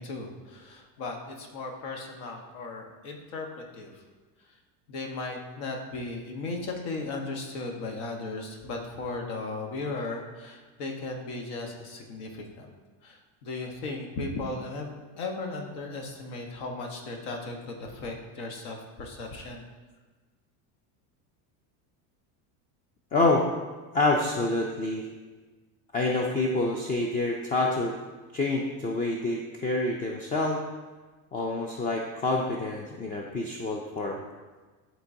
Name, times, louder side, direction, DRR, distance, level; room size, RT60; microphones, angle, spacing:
voice 1, 0.0-4.0 4.9-12.7 13.0-19.6, left 3 dB, 65° left, 2 dB, 1.5 m, -36 dB
voice 2, 23.1-23.4 23.9-25.1 25.9-27.9 28.3-30.6 31.3-34.2, left 2 dB, 20° left, 0 dB, 0.4 m, -27 dB
11.5 x 3.9 x 2.7 m, 1.3 s
supercardioid pair, 115°, 50 cm